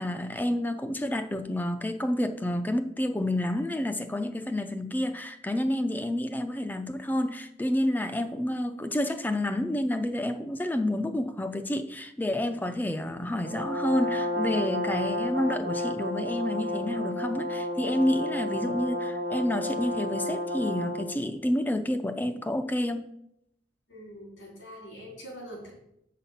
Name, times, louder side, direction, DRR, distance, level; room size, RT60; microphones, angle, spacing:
voice 1, 0.0-23.1, left 1 dB, 10° left, 9 dB, 0.4 m, -29 dB
Brass instrument, 13.4-21.2, left 1 dB, 55° right, 1.0 m, -31 dB
voice 2, 23.9-25.7, equal, 85° left, -3 dB, 3.6 m, -44 dB
7.4 x 5.7 x 5.6 m, 0.80 s
head